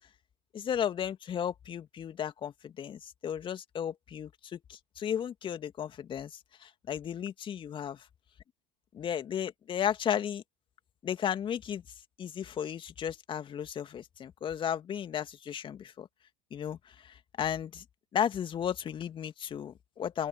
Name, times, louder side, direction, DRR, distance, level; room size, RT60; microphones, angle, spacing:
voice 1, 0.5-8.0 8.9-10.4 11.0-11.8 12.2-16.1 16.5-17.8 18.1-20.3, left 9 dB, 30° left, 2.6 m, -34 dB
open air
figure-of-eight pair, 75°, 17 cm